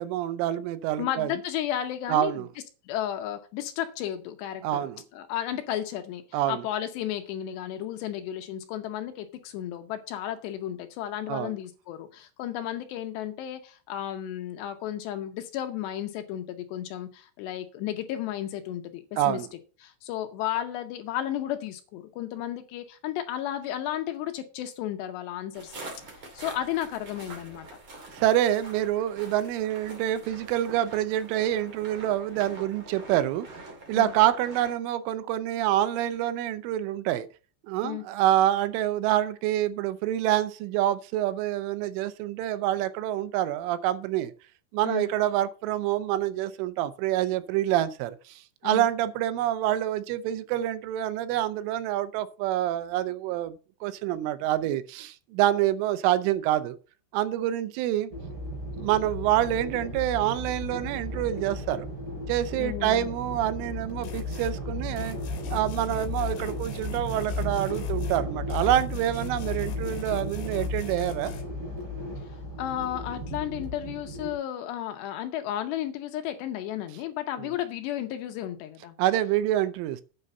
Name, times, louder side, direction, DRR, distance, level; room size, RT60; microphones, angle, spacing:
voice 1, 0.0-1.3 2.1-2.5 4.6-5.0 6.3-6.6 11.3-11.5 19.2-19.5 28.1-33.5 33.9-37.3 37.7-44.3 44.7-53.5 53.8-56.8 57.1-58.1 58.8-61.9 62.3-65.2 65.5-71.3 77.4-77.5 79.0-80.0, right 13 dB, 85° right, 3.3 m, -27 dB
voice 2, 1.0-2.5 2.9-4.9 5.1-19.4 19.8-25.8 26.3-27.7 34.0-34.1 37.8-38.0 44.8-45.1 48.6-48.9 62.6-63.1 72.6-79.0, left 11 dB, 75° left, 2.7 m, -33 dB
sound 1, 25.5-34.7, right 2 dB, 35° right, 2.6 m, -45 dB
sound 2, 58.1-74.3, equal, 60° right, 6.1 m, -35 dB
sound 3, 64.0-64.6 65.0-68.2 68.5-71.4, left 8 dB, 60° left, 3.0 m, -37 dB
9.0 x 5.4 x 6.6 m
omnidirectional pair, 5.5 m